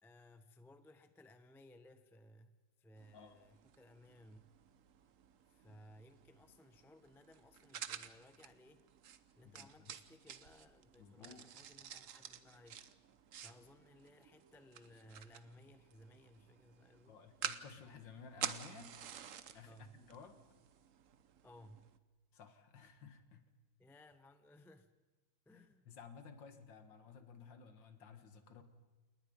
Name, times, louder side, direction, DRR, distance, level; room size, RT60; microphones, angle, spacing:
voice 1, 0.0-4.5 5.5-8.8 9.3-12.8 13.4-17.2 19.7-20.0 21.4-21.9 23.8-24.9 25.5-25.9, left 1 dB, ahead, 9 dB, 0.5 m, -61 dB
sound 1, 3.0-22.0, right 8 dB, 55° right, 0.9 m, -50 dB
voice 2, 9.4-9.9 11.0-11.4 17.1-18.9 19.5-20.4 22.3-23.4 25.5-28.6, left 6 dB, 65° left, 8 dB, 2.2 m, -55 dB
28.5 x 20.0 x 5.3 m, 1.2 s
omnidirectional pair, 2.2 m